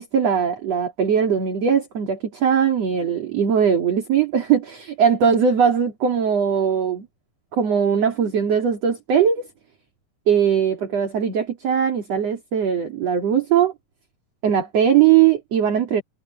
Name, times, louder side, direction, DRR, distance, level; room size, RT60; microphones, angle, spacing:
voice 1, 0.0-7.1 7.5-9.5 10.3-13.7 14.4-16.0, right 8 dB, 45° right, 3.6 m, -20 dB
omnidirectional pair, 4.1 m